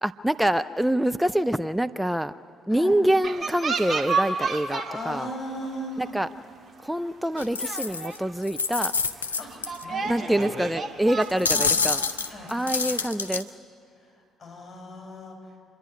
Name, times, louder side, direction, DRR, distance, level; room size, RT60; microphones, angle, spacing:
voice 1, 0.0-2.3 2.7-5.3 6.0-6.3 6.8-8.9 10.0-12.0 12.5-13.5, right 1 dB, 5° right, 12 dB, 0.4 m, -25 dB
sound 1, 3.2-5.1 5.4-5.8 6.5-6.6 7.0-7.1 7.3-8.3 8.8-8.9 9.5-13.1, right 4 dB, 35° right, 2.1 m, -31 dB
voice 2, 4.8-6.2 9.2-10.5 11.3-11.7 12.3-12.5 13.9-15.6, equal, 30° left, 0 dB, 7.3 m, -38 dB
sound 2, 7.4-8.2 8.4-9.8 10.4-10.5 11.2-13.4, left 5 dB, 85° left, 0.5 m, -27 dB
27.0 x 11.0 x 9.7 m, 2.4 s
figure-of-eight pair, 50°, 0 cm